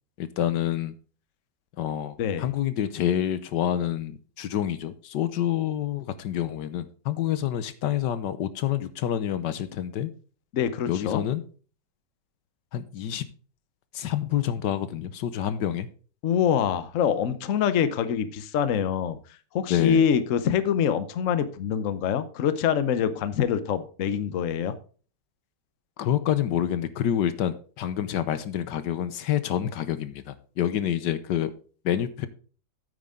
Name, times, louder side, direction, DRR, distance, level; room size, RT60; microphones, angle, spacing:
voice 1, 0.2-0.9 1.8-10.1 10.9-11.4 12.7-13.3 13.9-15.9 19.7-20.1 26.0-31.5 31.8-32.3, left 10 dB, 75° left, 13 dB, 1.4 m, -27 dB
voice 2, 10.5-11.2 16.2-19.2 19.5-24.7, left 8 dB, 55° left, 13 dB, 1.0 m, -25 dB
9.2 x 8.8 x 3.7 m, 0.39 s
omnidirectional pair, 1.9 m